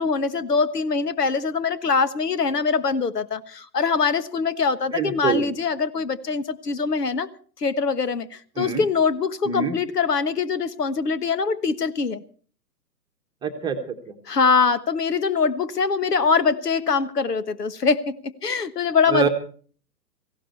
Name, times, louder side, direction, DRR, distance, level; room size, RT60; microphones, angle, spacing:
voice 1, 0.0-7.3 7.6-12.2 14.3-19.3, left 5 dB, 70° left, 15 dB, 1.4 m, -23 dB
voice 2, 4.9-5.4 8.6-8.8 9.4-9.8 13.4-14.2 19.1-19.3, right 6 dB, 10° right, 5 dB, 1.2 m, -25 dB
18.0 x 16.0 x 4.5 m, 0.43 s
figure-of-eight pair, 125°, 49 cm